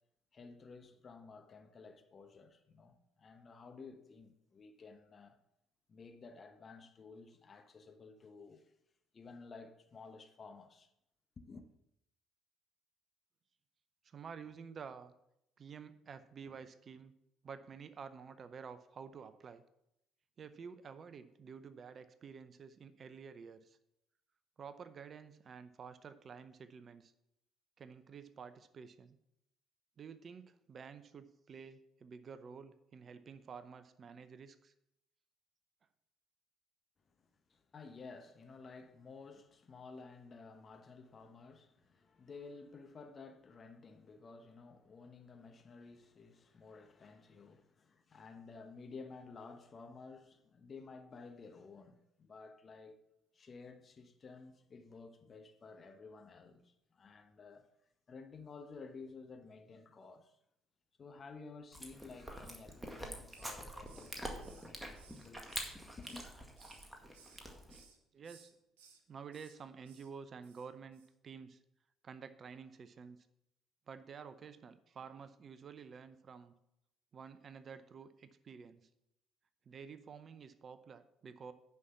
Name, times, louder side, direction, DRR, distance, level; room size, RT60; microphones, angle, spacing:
voice 1, 0.3-5.4 5.9-8.7 9.1-10.9 11.4-11.6 37.2-53.0 53.3-57.7 58.1-60.4 61.0-65.5 66.0-66.2, left 4 dB, 40° left, 1.1 m, -53 dB
voice 2, 14.0-15.1 15.6-17.1 17.4-19.6 20.4-23.8 24.6-27.1 27.8-29.2 30.0-34.7 68.1-68.5 69.1-71.6 72.0-73.2 73.9-76.5 77.1-78.9 79.7-81.5, right 6 dB, 45° right, 0.6 m, -51 dB
Chewing mastication, 61.7-67.8, right 1 dB, 10° right, 1.9 m, -46 dB
Hiss, 62.8-63.6 63.9-66.3 66.6-67.4 67.7-68.0 68.2-69.0 69.3-69.6 69.8-70.1 70.4-70.7 70.9-71.1, right 7 dB, 75° right, 0.9 m, -62 dB
9.5 x 5.9 x 5.8 m
figure-of-eight pair, 50°, 0 cm